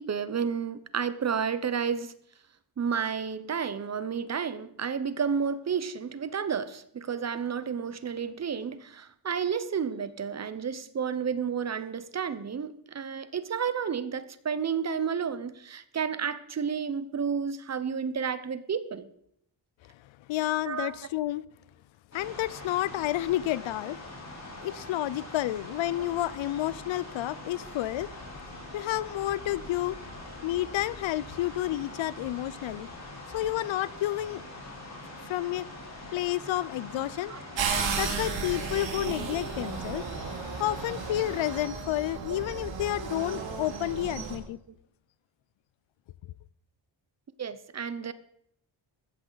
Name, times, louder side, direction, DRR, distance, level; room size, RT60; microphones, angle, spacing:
voice 1, 0.0-2.1 2.8-19.1 20.6-21.0 37.3-37.4 47.4-48.1, right 6 dB, 35° right, 0.7 m, -31 dB
voice 2, 20.3-21.4 22.1-24.1 24.6-28.1 28.7-30.0 30.4-32.9 33.3-34.4 35.3-35.7 36.1-37.4 38.0-40.0 40.6-44.6, left 14 dB, 75° left, 0.6 m, -30 dB
sound 1, 22.1-41.6, left 2 dB, 35° left, 3.7 m, -43 dB
sound 2, 37.6-44.4, right 5 dB, 75° right, 2.7 m, -34 dB
14.5 x 14.0 x 4.0 m
wide cardioid pair, 150°, 46 cm